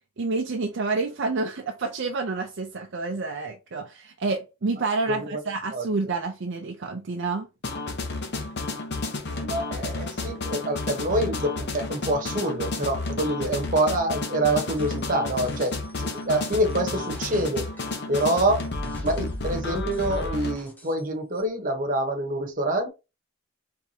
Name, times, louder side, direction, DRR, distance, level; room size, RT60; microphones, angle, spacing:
voice 1, 0.2-7.5, right 3 dB, 50° right, 0.5 m, -29 dB
voice 2, 5.1-5.4 5.7-5.9 9.3-18.7 19.0-22.9, right 1 dB, 35° right, 1.1 m, -26 dB
sound 1, 7.6-20.6, left 2 dB, 50° left, 0.9 m, -31 dB
sound 2, 14.8-15.1 15.3-19.5 19.9-21.1 21.3-21.4, left 1 dB, 10° left, 0.8 m, -50 dB
4.7 x 3.5 x 2.8 m
head